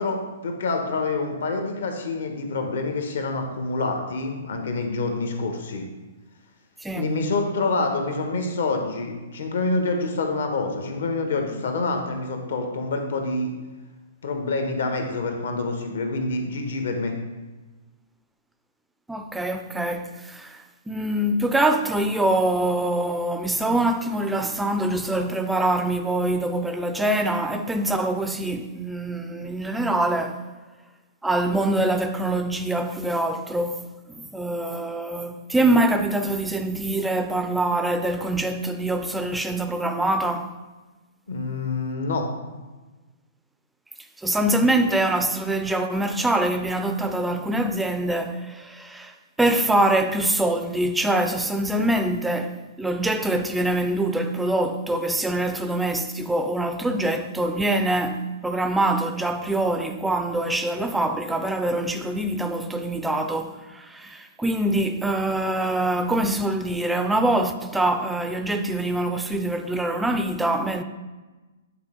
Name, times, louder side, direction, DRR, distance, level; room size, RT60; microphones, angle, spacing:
voice 1, 0.0-5.8 6.9-13.5 14.2-17.2 41.3-42.3, left 3 dB, 65° left, 1.1 m, -27 dB
voice 2, 19.1-20.6 20.9-30.4 31.2-40.5 44.2-70.8, right 1 dB, 5° right, 0.4 m, -24 dB
8.8 x 4.0 x 3.7 m
figure-of-eight pair, 115°, 0 cm